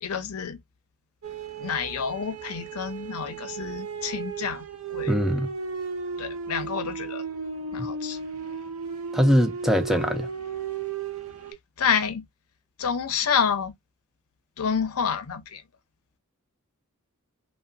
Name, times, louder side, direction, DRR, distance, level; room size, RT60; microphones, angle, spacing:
voice 1, 0.0-0.6 1.6-5.2 6.2-7.2 7.7-8.2 11.8-12.3 12.8-13.7 14.6-15.6, left 6 dB, 85° left, 0.6 m, -28 dB
sound 1, 1.2-11.5, right 5 dB, 75° right, 0.6 m, -35 dB
voice 2, 5.1-5.5 7.8-7.9 9.1-10.3, equal, ahead, 0.3 m, -22 dB
2.8 x 2.1 x 2.5 m
head